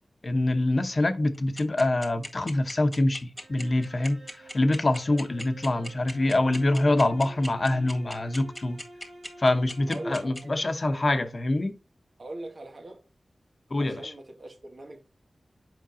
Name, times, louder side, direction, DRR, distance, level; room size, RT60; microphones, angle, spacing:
voice 1, 0.2-8.8 9.4-11.7 13.7-14.1, left 2 dB, 50° left, 0.9 m, -25 dB
sound 1, 1.3-10.4, equal, ahead, 1.8 m, -38 dB
sound 2, 3.4-10.6, right 1 dB, 80° right, 3.0 m, -50 dB
voice 2, 9.9-10.6 12.2-13.0 13.8-15.0, right 1 dB, 65° right, 1.8 m, -41 dB
7.5 x 5.3 x 2.7 m
cardioid pair, 50°, 0 cm